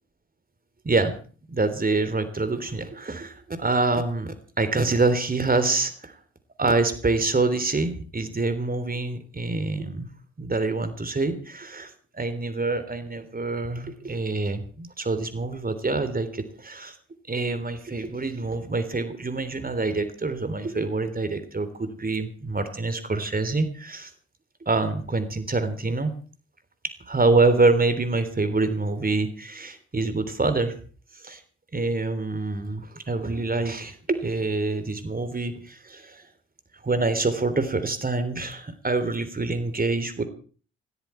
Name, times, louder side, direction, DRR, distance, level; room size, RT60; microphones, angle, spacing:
voice 1, 1.5-6.1 6.6-10.1 10.4-17.0 17.3-24.1 24.6-26.1 27.1-30.7 31.1-31.4 31.7-36.3 36.8-40.2, right 3 dB, 30° right, 10 dB, 3.3 m, -26 dB
17.5 x 16.0 x 4.5 m, 0.41 s
hypercardioid pair, 40°, 31 cm